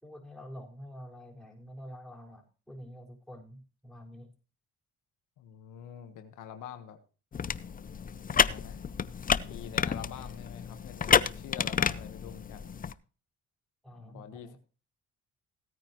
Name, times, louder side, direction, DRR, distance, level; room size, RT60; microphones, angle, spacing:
voice 1, 0.0-4.3 13.8-14.6, equal, ahead, -2 dB, 4.9 m, -47 dB
voice 2, 5.4-7.0 8.4-8.9 9.5-12.7 13.9-14.6, left 9 dB, 85° left, 7 dB, 1.4 m, -46 dB
sound 1, 7.3-12.9, left 7 dB, 30° left, 0.5 m, -30 dB
16.5 x 9.2 x 3.1 m, 0.36 s
cardioid pair, 90°, 30 cm